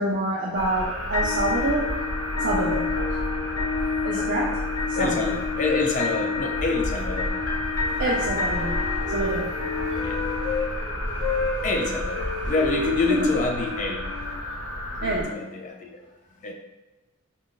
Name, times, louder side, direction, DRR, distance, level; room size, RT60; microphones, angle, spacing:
voice 1, 0.0-1.9 2.4-3.2 4.0-4.6 4.9-5.3 8.0-9.6 13.1-13.3 15.0-15.3, right 1 dB, 50° right, -6 dB, 0.5 m, -27 dB
sound 1, 0.5-15.2, equal, 60° left, 0.8 m, -31 dB
sound 2, 1.1-11.2, left 5 dB, 90° left, 0.5 m, -30 dB
voice 2, 4.9-7.3 10.0-10.5 11.6-14.0 15.0-16.0 16.3-16.5, left 3 dB, 35° left, 2 dB, 0.3 m, -27 dB
Wind instrument woodwind instrument, 7.7-10.7 11.2-15.0, left 3 dB, 10° right, 1.0 m, -32 dB
2.4 x 2.3 x 3.7 m, 1.1 s
head